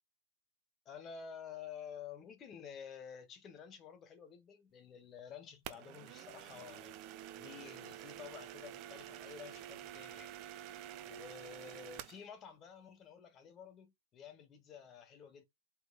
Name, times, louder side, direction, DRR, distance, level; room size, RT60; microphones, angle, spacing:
voice 1, 0.8-7.0 7.4-10.3 11.0-15.4, left 7 dB, 25° left, 1.4 m, -51 dB
sound 1, 5.6-12.2, right 11 dB, 35° right, 0.6 m, -49 dB
4.7 x 4.3 x 2.4 m
hypercardioid pair, 125°, 0 cm